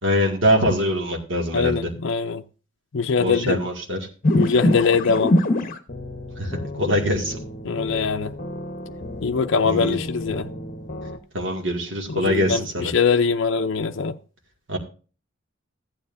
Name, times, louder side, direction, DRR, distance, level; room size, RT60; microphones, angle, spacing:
voice 1, 0.0-1.9 3.2-4.0 6.4-7.4 9.6-10.0 11.3-12.9 14.7-14.8, equal, 65° right, 2.2 m, -23 dB
voice 2, 1.5-2.4 2.9-3.6 4.3-5.4 7.6-8.3 9.2-10.5 12.1-14.2, left 5 dB, 60° left, 0.5 m, -22 dB
sound 1, 4.2-11.2, left 1 dB, 40° left, 1.1 m, -26 dB
14.5 x 9.4 x 2.6 m
head